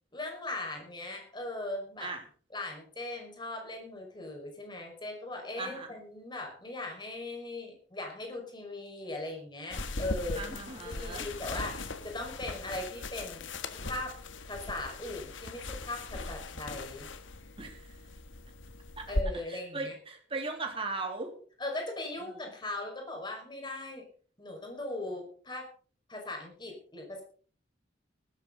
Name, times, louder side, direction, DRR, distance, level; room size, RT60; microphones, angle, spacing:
voice 1, 0.1-2.1 2.5-10.5 10.8-13.4 13.8-14.1 14.4-17.1 19.1-19.9 21.6-24.1 24.4-25.7 26.1-27.2, left 2 dB, 25° left, 2 dB, 5.4 m, -39 dB
voice 2, 5.6-5.9 10.3-11.3 17.6-18.0 19.0-19.1 19.5-21.3 22.3-22.4, right 3 dB, 30° right, 2 dB, 3.1 m, -38 dB
sound 1, 9.7-19.2, left 2 dB, 80° left, 1.6 m, -39 dB
19.0 x 13.5 x 4.0 m, 0.44 s
head